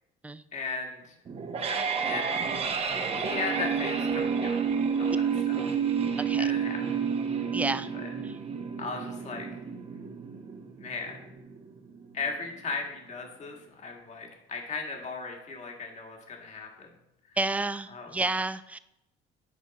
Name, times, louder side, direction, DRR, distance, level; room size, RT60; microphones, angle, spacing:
voice 1, 0.5-1.1 1.7-2.2 2.9-4.6 4.9-5.6 6.4-6.8 7.9-8.1 8.8-9.5 10.8-11.2 12.1-16.9 17.3-17.4 17.9-18.2, left 4 dB, 45° left, 2 dB, 1.5 m, -37 dB
sound 1, 1.3-12.3, right 6 dB, 35° right, 0.8 m, -30 dB
voice 2, 6.2-6.5 7.5-7.9 17.4-18.8, right 2 dB, 10° right, 13 dB, 0.3 m, -30 dB
8.8 x 5.1 x 4.0 m, 0.87 s
cardioid pair, 110°, 17 cm